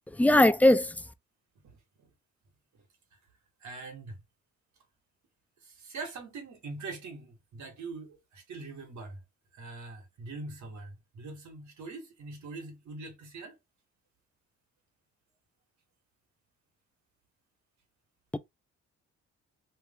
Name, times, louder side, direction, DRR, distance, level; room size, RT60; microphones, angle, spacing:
voice 1, 0.2-1.0 18.3-18.4, left 1 dB, 5° left, 0.3 m, -20 dB
voice 2, 1.6-2.1 3.6-4.2 5.6-9.2 9.5-13.6, right 3 dB, 70° right, 1.8 m, -43 dB
3.4 x 2.6 x 3.6 m
cardioid pair, 90°, 30 cm